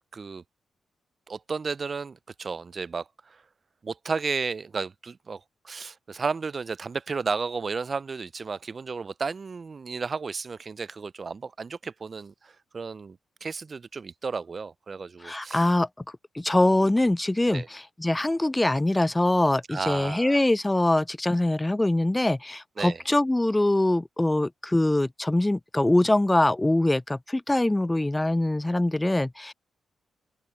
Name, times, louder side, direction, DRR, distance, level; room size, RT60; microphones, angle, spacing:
voice 1, 0.1-0.4 1.3-3.4 3.8-15.6 17.5-17.7 19.7-20.4 22.8-23.0, right 4 dB, 50° right, 0.6 m, -33 dB
voice 2, 15.2-15.9 16.3-29.5, left 1 dB, 15° left, 0.5 m, -23 dB
open air
hypercardioid pair, 40°, 0 cm